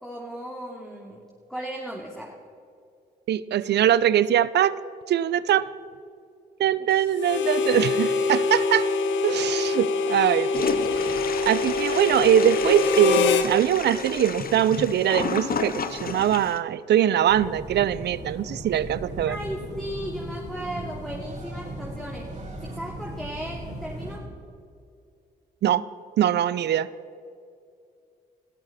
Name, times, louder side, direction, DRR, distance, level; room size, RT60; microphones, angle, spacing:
voice 1, 0.0-2.4 6.8-7.1 9.3-9.4 19.2-22.4 22.6-24.3 26.6-26.8, equal, ahead, -2 dB, 2.7 m, -36 dB
voice 2, 3.3-4.7 5.1-5.7 6.6-8.9 9.2-19.4 25.6-25.8 26.2-26.9, right 10 dB, 65° right, 18 dB, 0.6 m, -22 dB
Harmonica, 7.2-13.5, left 4 dB, 85° left, 1.1 m, -24 dB
Toilet flush, 10.5-16.6, left 5 dB, 50° left, 1.3 m, -32 dB
sound 1, 17.3-24.2, right 1 dB, 40° right, 4.6 m, -37 dB
20.5 x 13.5 x 4.2 m, 2.5 s
supercardioid pair, 55°, 19 cm